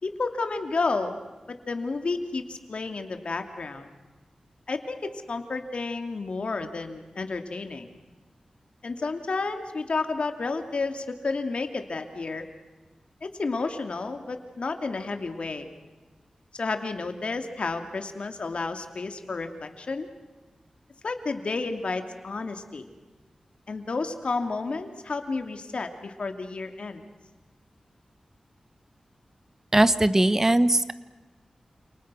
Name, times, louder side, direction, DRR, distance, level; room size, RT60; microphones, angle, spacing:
voice 1, 0.0-1.2 1.5-3.9 4.7-7.9 8.8-12.5 13.2-15.7 16.5-20.1 21.0-22.9 23.7-27.0, left 3 dB, 65° left, 6 dB, 2.7 m, -31 dB
voice 2, 29.7-30.9, right 1 dB, 20° right, 13 dB, 1.1 m, -20 dB
29.5 x 28.5 x 6.3 m, 1.2 s
wide cardioid pair, 70°, 2 cm